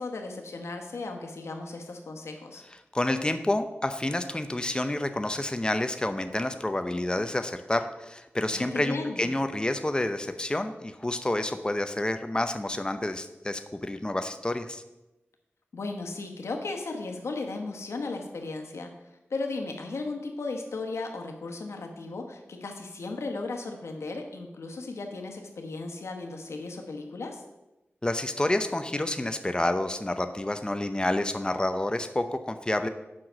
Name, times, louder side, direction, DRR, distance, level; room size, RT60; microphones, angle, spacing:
voice 1, 0.0-2.6 8.5-9.3 15.7-18.9 19.3-27.4, left 3 dB, 90° left, 3 dB, 1.2 m, -36 dB
voice 2, 2.9-14.8 28.0-32.9, left 1 dB, 20° left, 8 dB, 0.7 m, -29 dB
7.6 x 5.8 x 6.2 m, 0.99 s
cardioid pair, 50°, 5 cm